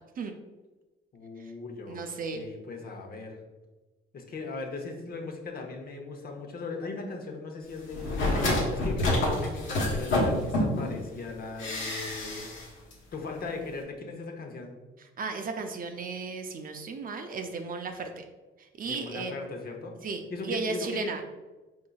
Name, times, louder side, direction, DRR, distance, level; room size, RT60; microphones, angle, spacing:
voice 1, 1.1-2.0 2.3-3.4 4.1-8.2 8.7-12.5 13.1-14.7 18.8-19.9 20.3-21.2, left 3 dB, 50° left, 3 dB, 0.8 m, -38 dB
voice 2, 1.9-2.4 15.2-18.2 18.6-19.3 20.0-21.2, right 4 dB, 45° right, 5 dB, 0.5 m, -35 dB
sound 1, 7.9-10.9 11.6-12.6 12.9-13.0, left 1 dB, 80° left, 1.2 m, -27 dB
4.6 x 3.9 x 2.3 m, 1.2 s
cardioid pair, 90°, 20 cm